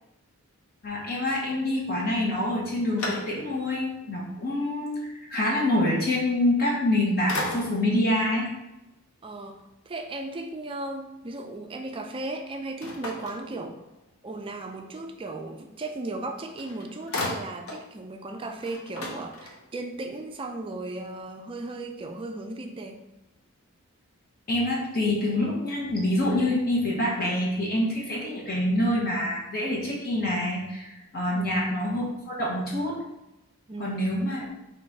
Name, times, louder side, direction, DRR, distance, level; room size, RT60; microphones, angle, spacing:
voice 1, 0.8-5.0 5.3-8.5 24.5-33.0 33.8-34.4, left 1 dB, 40° left, -4 dB, 1.0 m, -26 dB
sound 1, 2.3-3.8 4.3-4.4 6.6-7.0 7.3-8.0 12.8-14.1 16.2-16.3 16.6-17.9 18.2-18.3 18.6-19.9, left 2 dB, 70° left, 0.9 m, -35 dB
voice 2, 9.2-13.8 14.2-23.0 31.3-31.8 33.7-34.2, right 2 dB, 25° right, 4 dB, 0.4 m, -36 dB
3.9 x 3.0 x 4.4 m, 0.96 s
head